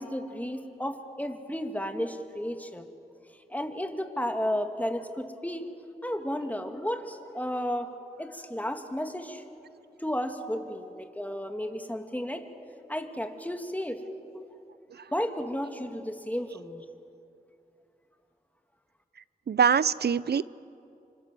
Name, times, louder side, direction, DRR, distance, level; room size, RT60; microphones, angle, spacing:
voice 1, 0.0-2.9 3.5-5.7 6.0-7.9 8.2-9.4 10.0-12.4 12.9-14.0 14.3-14.5 15.1-16.8, equal, 10° left, 6 dB, 2.4 m, -33 dB
voice 2, 19.5-20.4, right 6 dB, 85° right, 19 dB, 0.5 m, -24 dB
26.5 x 26.0 x 7.6 m, 2.6 s
cardioid pair, 40°, 17 cm